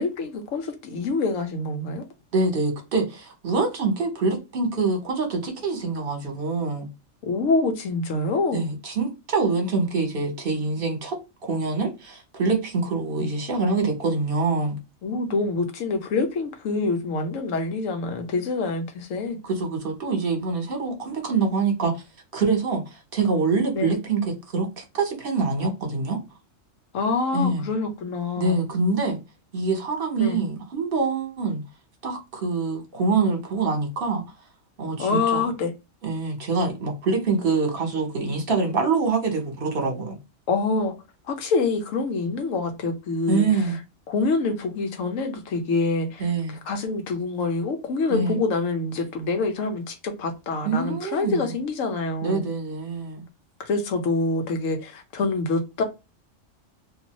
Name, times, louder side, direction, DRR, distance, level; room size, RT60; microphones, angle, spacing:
voice 1, 0.0-2.0 7.2-8.7 13.2-13.3 15.0-19.4 23.7-24.0 26.9-28.6 30.2-30.4 35.0-35.7 40.5-41.0 41.3-43.5 44.1-46.2 46.7-52.5 53.6-55.8, left 3 dB, 90° left, 1.1 m, -26 dB
voice 2, 2.3-6.9 8.5-11.2 11.4-14.8 19.4-22.0 22.3-26.2 27.3-27.7 28.4-29.2 29.5-31.6 32.0-34.2 34.8-35.5 36.0-40.2 43.3-43.8 46.2-46.6 48.1-48.4 50.6-51.5 52.2-53.2, right 4 dB, 50° right, 1.1 m, -25 dB
2.7 x 2.6 x 2.9 m
omnidirectional pair, 1.3 m